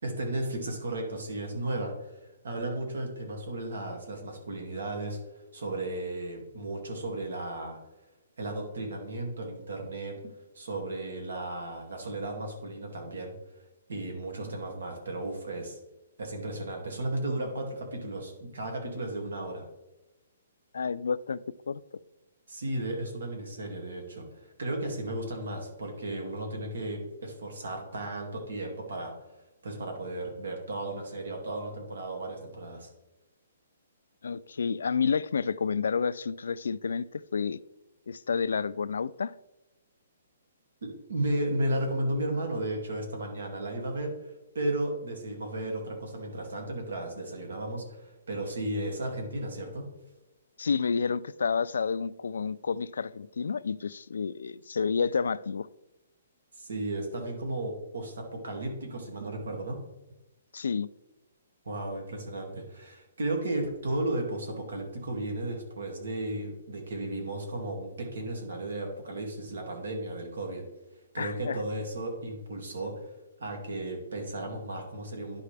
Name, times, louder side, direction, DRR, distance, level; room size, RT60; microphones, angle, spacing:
voice 1, 0.0-5.2 5.5-7.8 8.4-10.2 10.5-13.3 13.9-15.8 16.2-19.6 22.5-29.1 29.6-32.9 40.8-49.9 56.6-59.8 61.7-70.7 71.1-73.1 73.4-75.4, right 1 dB, 90° right, 2.3 m, -34 dB
voice 2, 20.7-21.4 21.7-21.8 34.2-37.6 38.1-39.3 50.6-55.7 60.5-60.9 71.2-71.6, left 5 dB, 85° left, 0.3 m, -30 dB
11.0 x 4.9 x 3.4 m
hypercardioid pair, 175°, 0 cm